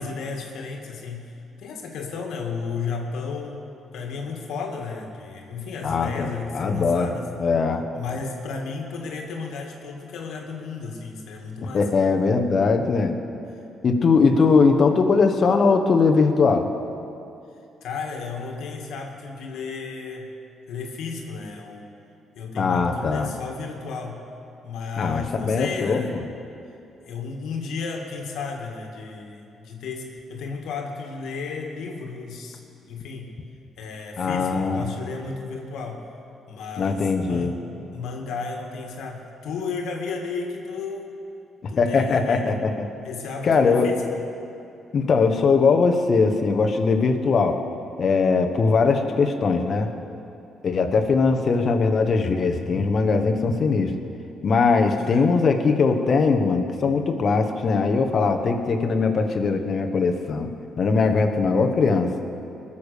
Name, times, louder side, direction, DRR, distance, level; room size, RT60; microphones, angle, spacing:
voice 1, 0.0-1.3 1.6-3.6 3.9-7.3 7.9-11.9 13.5-13.6 17.8-20.3 20.7-21.9 22.4-24.2 24.6-26.2 27.0-33.3 33.8-36.0 36.5-37.6 37.9-41.1 41.7-42.6 43.0-44.2 54.9-55.4, left 5 dB, 80° left, 1 dB, 1.9 m, -33 dB
voice 2, 5.8-7.1 7.4-7.8 11.7-13.2 13.8-16.7 22.6-23.3 25.0-26.2 34.2-34.8 36.8-37.5 41.8-42.9 43.4-43.9 44.9-47.6 48.0-49.9 50.6-53.9 54.4-60.5 60.8-62.1, left 4 dB, 50° left, 5 dB, 1.3 m, -20 dB
20.5 x 7.2 x 6.7 m, 2.7 s
cardioid pair, 90°, 0 cm